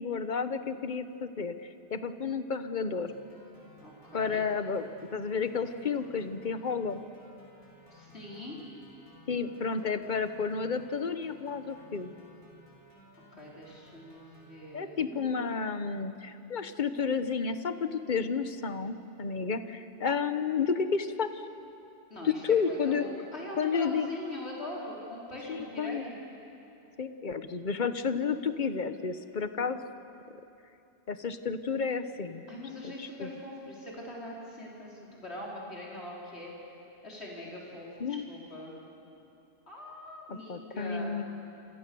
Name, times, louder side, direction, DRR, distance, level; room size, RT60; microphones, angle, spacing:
voice 1, 0.0-3.1 4.1-7.0 9.3-12.1 14.7-21.4 22.2-23.0 23.6-24.1 25.5-26.1 27.0-29.8 31.1-32.4 32.8-33.3 38.0-38.2 40.3-41.2, left 5 dB, 45° left, 10 dB, 1.2 m, -31 dB
sound 1, 3.1-14.6, equal, 30° left, 7.2 m, -57 dB
voice 2, 3.8-4.5 7.9-8.6 13.4-15.7 22.1-26.2 32.5-36.5 37.0-38.7 39.7-41.2, left 1 dB, 75° left, -4 dB, 4.6 m, -42 dB
28.5 x 27.0 x 7.0 m, 2.8 s
omnidirectional pair, 1.1 m